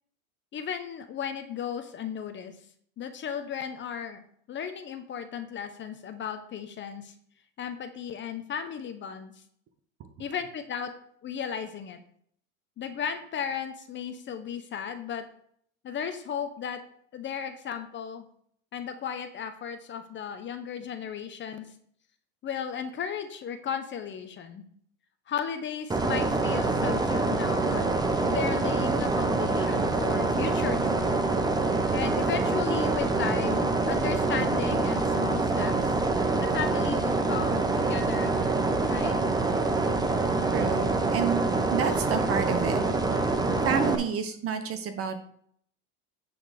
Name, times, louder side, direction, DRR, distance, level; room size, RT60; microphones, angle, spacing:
voice 1, 0.5-2.5 3.0-7.1 7.6-9.3 10.2-10.9 11.2-12.0 12.8-15.2 15.8-16.8 17.1-18.2 18.7-21.7 22.4-24.6 25.3-27.9 28.2-31.2 31.9-35.9 36.4-39.2, left 7 dB, 30° left, 8 dB, 0.9 m, -35 dB
sound 1, 25.9-44.0, right 3 dB, 10° right, 0.8 m, -26 dB
voice 2, 40.5-41.4 41.7-42.8 43.6-45.2, right 7 dB, 35° right, 9 dB, 1.1 m, -29 dB
9.6 x 4.3 x 5.1 m, 0.63 s
supercardioid pair, 120°, 40 cm